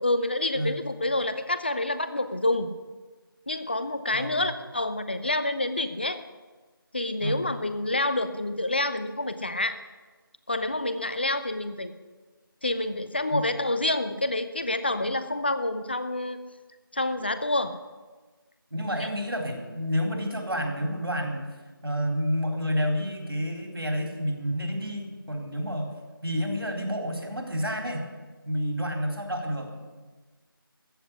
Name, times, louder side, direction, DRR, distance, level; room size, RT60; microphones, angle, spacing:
voice 1, 0.0-2.7 3.5-6.2 6.9-9.8 10.5-11.9 12.6-16.4 16.9-17.8 18.9-19.1, left 2 dB, 25° left, 12 dB, 0.6 m, -28 dB
voice 2, 4.1-4.5 7.2-7.4 13.3-13.4 18.7-21.4 21.8-25.9 26.2-28.1 28.5-29.8, equal, 85° right, 2 dB, 3.8 m, -29 dB
14.5 x 8.0 x 9.7 m, 1.3 s
figure-of-eight pair, 170°, 12 cm